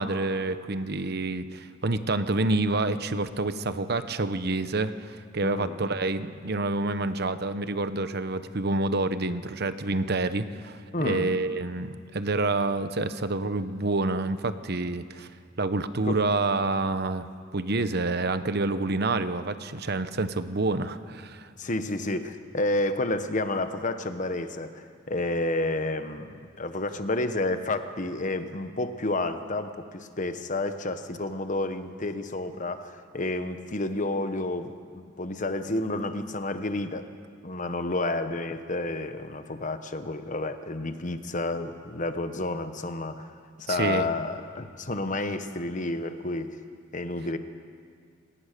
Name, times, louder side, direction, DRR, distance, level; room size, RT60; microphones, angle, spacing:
voice 1, 0.0-15.3 15.6-17.3 17.5-21.5 43.7-44.1, right 2 dB, 55° right, 11 dB, 1.0 m, -28 dB
voice 2, 5.4-5.9 10.9-11.3 16.0-16.2 21.6-37.1 37.4-43.3 43.6-46.5 46.9-47.4, left 2 dB, 40° left, 9 dB, 1.2 m, -30 dB
29.5 x 18.0 x 6.8 m, 2.1 s
head